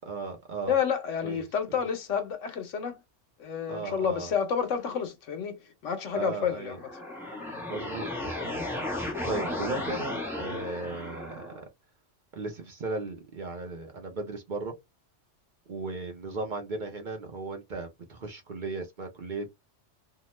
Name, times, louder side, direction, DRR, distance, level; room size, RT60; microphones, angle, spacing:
voice 1, 0.1-0.7 1.2-1.8 3.7-4.3 6.1-6.8 7.7-8.6 9.3-11.6 12.3-14.7 15.7-19.5, right 3 dB, 50° right, 0.7 m, -36 dB
voice 2, 0.7-3.0 3.4-6.9, left 7 dB, 80° left, 1.1 m, -30 dB
sound 1, 6.7-11.6, left 1 dB, ahead, 0.8 m, -34 dB
2.8 x 2.1 x 3.0 m
omnidirectional pair, 1.2 m